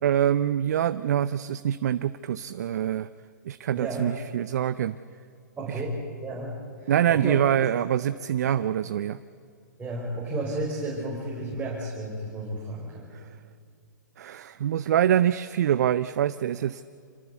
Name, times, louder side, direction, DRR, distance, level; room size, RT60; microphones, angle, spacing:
voice 1, 0.0-3.1 3.4-5.0 5.7-5.8 6.9-9.2 13.1-13.4 14.2-16.8, right 10 dB, 60° right, 14 dB, 0.7 m, -25 dB
voice 2, 3.8-4.1 5.6-7.4 9.8-13.1, right 2 dB, 15° right, -5 dB, 5.1 m, -33 dB
26.0 x 18.5 x 8.3 m, 2.4 s
hypercardioid pair, 120°, 10 cm